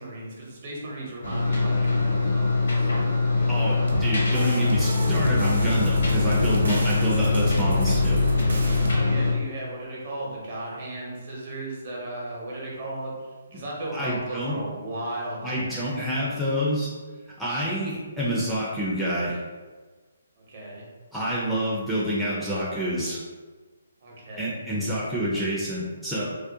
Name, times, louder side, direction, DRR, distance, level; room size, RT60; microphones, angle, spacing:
voice 1, 0.0-2.9 3.8-4.7 8.9-16.2 20.4-20.9 24.0-24.6, right 1 dB, 50° right, -4 dB, 0.8 m, -36 dB
sound 1, 1.2-9.3, left 3 dB, 70° left, 0.8 m, -23 dB
voice 2, 3.5-8.2 13.9-14.6 15.4-16.9 17.4-19.4 21.1-23.2 24.4-26.2, equal, ahead, -9 dB, 0.4 m, -28 dB
sound 2, 3.9-8.9, equal, 75° right, 0.5 m, -29 dB
2.4 x 2.1 x 2.6 m, 1.4 s
hypercardioid pair, 150°, 0 cm